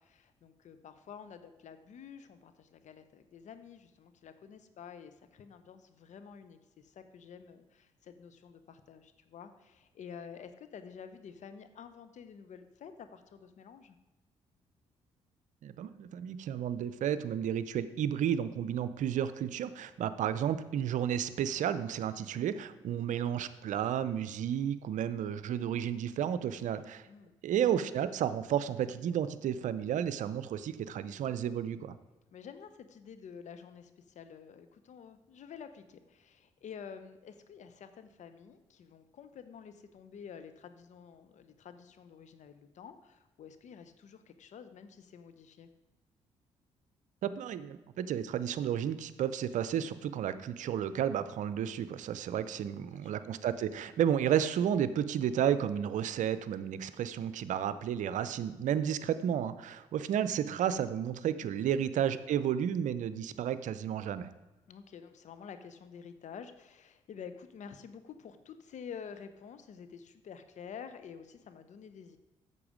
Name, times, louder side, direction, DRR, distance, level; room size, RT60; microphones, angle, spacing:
voice 1, 0.0-14.0 27.1-27.3 32.3-45.7 52.4-53.1 61.4-61.5 64.6-72.2, left 7 dB, 60° left, 10 dB, 0.8 m, -49 dB
voice 2, 15.6-27.1 27.4-31.9 47.2-64.3, right 9 dB, 65° right, 13 dB, 0.6 m, -32 dB
8.6 x 6.8 x 5.0 m, 1.1 s
hypercardioid pair, 50°, 14 cm